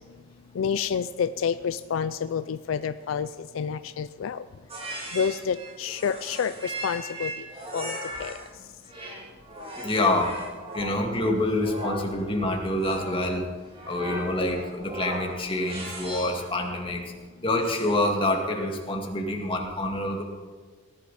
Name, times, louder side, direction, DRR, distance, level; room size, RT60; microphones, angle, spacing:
voice 1, 0.5-4.4 5.1-7.5 7.7-8.4, left 7 dB, 70° left, 13 dB, 0.4 m, -29 dB
sound 1, 4.7-8.5 8.9-16.5 17.6-18.2, right 1 dB, 30° right, 2.7 m, -38 dB
voice 2, 9.8-10.3 10.7-13.4 13.8-17.0 17.4-20.2, left 1 dB, 25° left, 1 dB, 2.1 m, -26 dB
18.5 x 12.0 x 4.2 m, 1.5 s
head